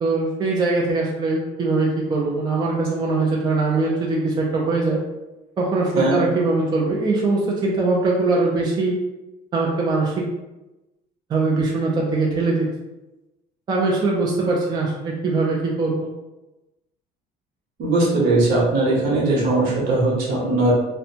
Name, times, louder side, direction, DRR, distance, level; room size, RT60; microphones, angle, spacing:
voice 1, 0.0-5.0 5.6-9.0 9.5-10.3 11.3-12.7 13.7-16.1, right 3 dB, 25° right, -3 dB, 0.4 m, -21 dB
voice 2, 17.8-20.7, right 2 dB, 65° right, -4 dB, 1.0 m, -19 dB
2.6 x 2.1 x 2.7 m, 1.0 s
cardioid pair, 145°, 17 cm